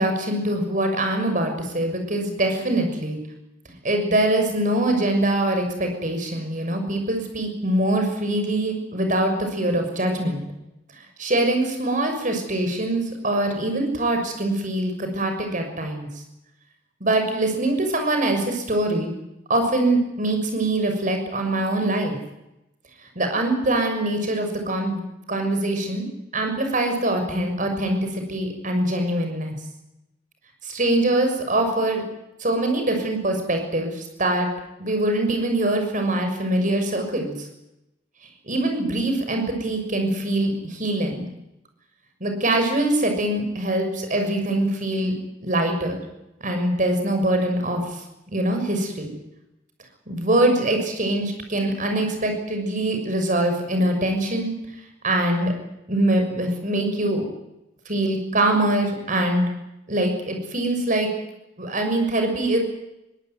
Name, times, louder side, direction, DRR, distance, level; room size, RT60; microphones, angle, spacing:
voice 1, 0.0-3.2 3.8-10.5 11.2-16.1 17.0-19.1 19.5-22.2 23.1-25.0 25.3-26.1 26.3-29.6 30.6-32.0 32.4-34.5 34.8-37.5 38.5-41.3 42.2-45.1 45.4-46.0 46.4-48.0 48.3-49.1 50.1-54.6 55.0-55.5 55.9-57.3 57.8-59.5 59.9-61.1 61.6-62.6, right 1 dB, 40° right, 5 dB, 6.5 m, -23 dB
22.5 x 18.0 x 9.5 m, 0.89 s
head